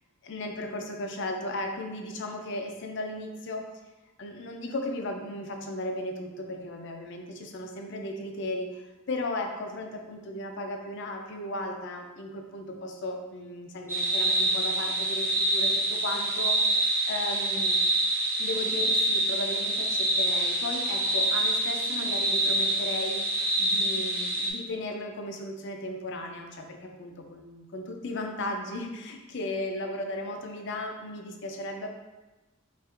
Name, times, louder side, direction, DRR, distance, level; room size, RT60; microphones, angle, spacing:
voice 1, 0.2-3.7 4.2-16.8 17.1-17.8 18.4-31.9, left 1 dB, 55° left, 3 dB, 0.5 m, -36 dB
sound 1, 13.9-24.5, right 1 dB, 10° right, 0.6 m, -26 dB
5.5 x 2.5 x 2.5 m, 1.1 s
head